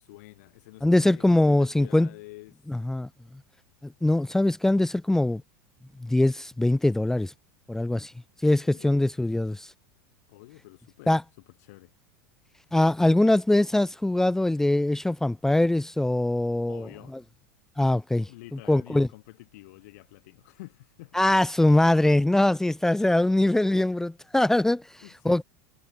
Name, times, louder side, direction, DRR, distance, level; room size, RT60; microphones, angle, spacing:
voice 1, 0.0-2.6 8.6-9.3 10.3-11.1 11.5-11.9 16.7-17.2 18.3-21.2 25.0-25.4, left 21 dB, 70° left, 4.2 m, -48 dB
voice 2, 0.8-2.1 2.7-3.1 3.8-5.4 6.0-7.3 7.7-8.1 8.4-9.7 11.1-11.2 12.7-16.9 17.8-18.3 18.7-19.1 21.1-25.4, left 1 dB, 5° left, 0.6 m, -22 dB
supercardioid pair, 120°, 9 cm